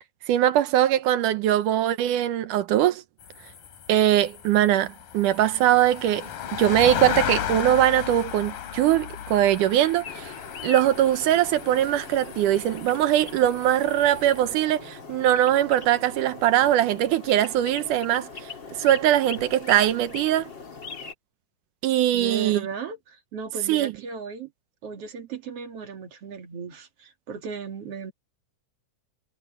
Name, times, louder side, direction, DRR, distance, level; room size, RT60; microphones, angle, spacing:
voice 1, 0.3-3.0 3.9-10.3 10.6-18.3 18.8-20.5 21.8-22.6 23.7-23.9, right 12 dB, 80° right, 2.4 m, -21 dB
sound 1, 3.2-14.5, left 9 dB, 85° left, 4.0 m, -35 dB
sound 2, 10.0-21.1, left 5 dB, 35° left, 3.7 m, -41 dB
voice 2, 22.1-24.5 24.8-28.1, right 5 dB, 50° right, 2.8 m, -36 dB
omnidirectional pair, 3.8 m